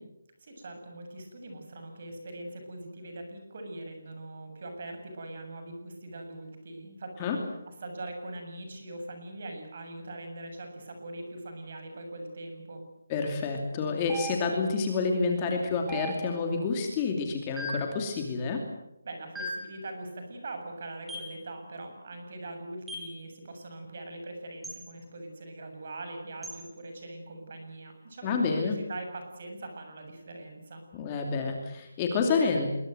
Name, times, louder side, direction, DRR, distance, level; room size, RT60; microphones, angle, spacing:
voice 1, 0.4-7.3 7.8-12.8 19.0-30.8, right 2 dB, 40° right, 5 dB, 7.4 m, -42 dB
voice 2, 13.1-18.7 28.2-28.7 30.9-32.7, left 4 dB, 15° left, 2 dB, 2.7 m, -28 dB
sound 1, 14.1-14.8 15.9-16.6 17.6-18.0 19.3-19.8 21.1-21.4 22.9-23.2 24.6-24.8 26.4-26.6, right 1 dB, 5° right, 2.7 m, -38 dB
27.0 x 22.0 x 8.0 m, 0.84 s
hypercardioid pair, 175°, 0 cm